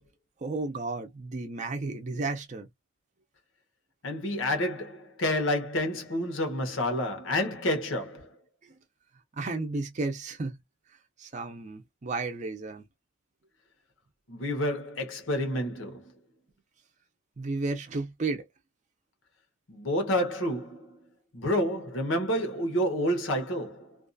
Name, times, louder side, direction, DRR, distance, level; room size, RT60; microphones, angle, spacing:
voice 1, 0.4-2.7 8.6-8.7 9.4-10.6 11.2-12.8 17.4-18.5, right 3 dB, 40° right, 0.5 m, -33 dB
voice 2, 4.0-8.4 14.3-16.1 19.7-21.0 21.3-24.0, left 1 dB, 80° left, 1.0 m, -29 dB
2.5 x 2.3 x 2.6 m
head